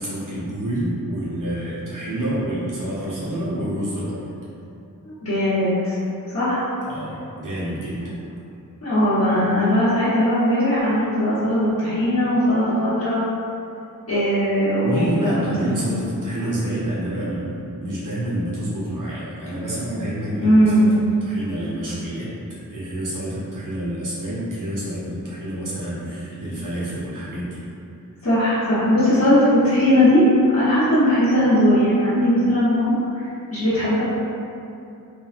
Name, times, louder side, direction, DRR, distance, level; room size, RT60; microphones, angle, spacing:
voice 1, 0.0-4.3 6.8-8.1 14.8-20.9 21.2-27.6, right 1 dB, 65° right, -9 dB, 0.8 m, -28 dB
voice 2, 5.0-5.9 6.3-6.6 8.8-13.2 14.1-15.3 15.6-15.8 20.4-20.9 28.2-34.0, equal, 45° left, -15 dB, 1.1 m, -19 dB
3.3 x 2.4 x 2.4 m, 2.6 s
wide cardioid pair, 55°, 35 cm